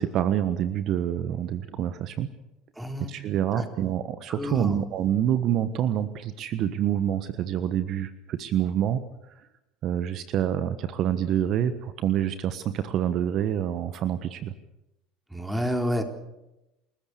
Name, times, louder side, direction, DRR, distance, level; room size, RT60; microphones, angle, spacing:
voice 1, 0.0-2.3 3.1-9.0 9.8-14.5, right 10 dB, 50° right, 13 dB, 1.3 m, -27 dB
voice 2, 2.8-3.1 3.5-3.7 4.3-4.8 15.3-16.0, equal, 5° right, 6 dB, 3.8 m, -29 dB
29.0 x 14.0 x 8.4 m, 0.92 s
hypercardioid pair, 70°, 0 cm